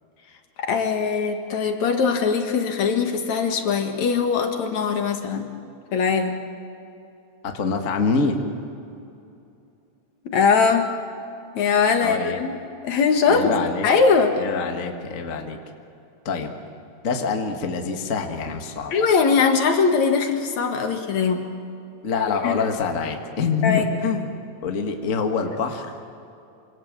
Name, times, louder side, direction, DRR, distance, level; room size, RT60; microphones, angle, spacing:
voice 1, 0.6-5.5 5.9-6.3 10.3-10.9 11.6-12.5 12.8-13.5 13.8-14.4 18.9-21.5 22.4-22.6 23.6-23.9, left 5 dB, 65° left, 5 dB, 3.0 m, -21 dB
voice 2, 7.4-8.4 12.0-12.4 13.3-13.9 14.4-15.6 16.2-16.5 17.0-18.9 22.0-24.3 24.6-25.9, left 5 dB, 30° left, 4 dB, 1.7 m, -25 dB
26.0 x 26.0 x 7.5 m, 2.7 s
omnidirectional pair, 3.5 m